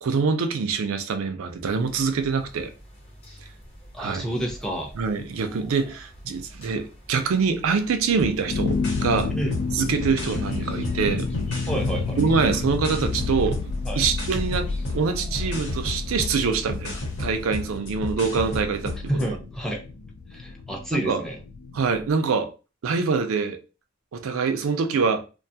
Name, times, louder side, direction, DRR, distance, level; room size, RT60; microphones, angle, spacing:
voice 1, 0.0-2.7 4.0-4.3 4.9-9.3 9.7-11.3 12.2-13.6 14.0-19.1 20.9-21.3 21.7-22.5 22.8-23.6 24.1-25.2, right 5 dB, 80° right, 0.4 m, -25 dB
sound 1, 1.4-17.8, equal, 30° left, 0.9 m, -45 dB
voice 2, 3.9-4.9 9.3-9.6 11.7-12.2 13.8-14.0 19.1-19.8 20.3-21.4, right 1 dB, 5° left, 0.4 m, -29 dB
sound 2, 8.2-19.3, left 2 dB, 60° left, 1.0 m, -34 dB
sound 3, 8.4-22.1, left 4 dB, 85° left, 0.3 m, -31 dB
2.4 x 2.3 x 2.7 m
head